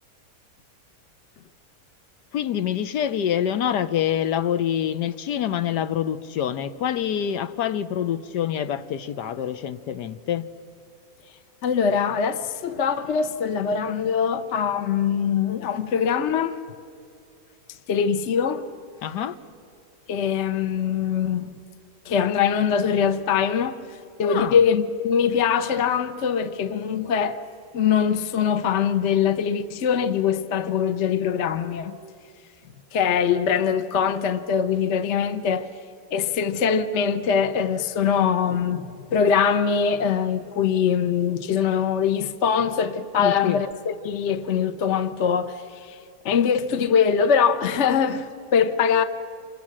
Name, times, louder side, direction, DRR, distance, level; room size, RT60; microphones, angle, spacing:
voice 1, 2.3-10.5 19.0-19.3 24.2-24.6 43.2-43.6, left 9 dB, 90° left, 1.5 m, -26 dB
voice 2, 11.6-16.6 17.9-18.7 20.1-21.5 22.1-23.8 24.2-27.4 27.7-32.0 32.9-35.7 36.1-46.0 46.2-49.0, left 7 dB, 55° left, 1.0 m, -22 dB
28.5 x 26.5 x 7.5 m
omnidirectional pair, 1.8 m